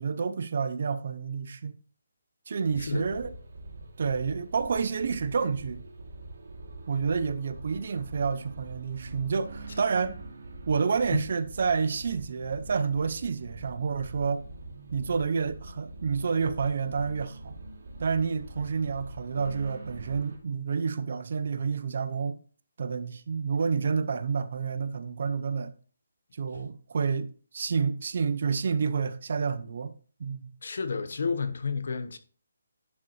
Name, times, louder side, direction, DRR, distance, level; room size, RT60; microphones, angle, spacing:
voice 1, 0.0-1.8 2.5-3.4 4.0-5.8 6.9-10.2 10.7-14.4 14.9-17.6 18.0-22.4 22.8-25.7 26.3-29.9 30.2-30.5, right 5 dB, 45° right, 0.6 m, -29 dB
sound 1, 2.7-20.4, right 2 dB, 60° right, 2.4 m, -44 dB
voice 2, 30.6-32.2, left 5 dB, 55° left, 1.0 m, -31 dB
10.5 x 6.3 x 3.0 m
hypercardioid pair, 175°, 0 cm